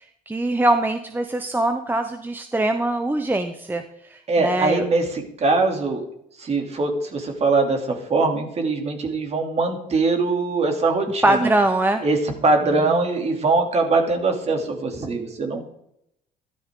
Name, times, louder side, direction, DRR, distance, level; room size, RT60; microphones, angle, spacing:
voice 1, 0.3-3.8 4.1-4.9 11.2-12.0, right 1 dB, 10° right, 7 dB, 0.9 m, -22 dB
voice 2, 4.3-6.0 6.4-11.5 12.0-12.2 12.4-15.6, right 3 dB, 40° right, 3 dB, 3.0 m, -22 dB
13.5 x 13.0 x 3.8 m, 0.75 s
cardioid pair, 110°, 17 cm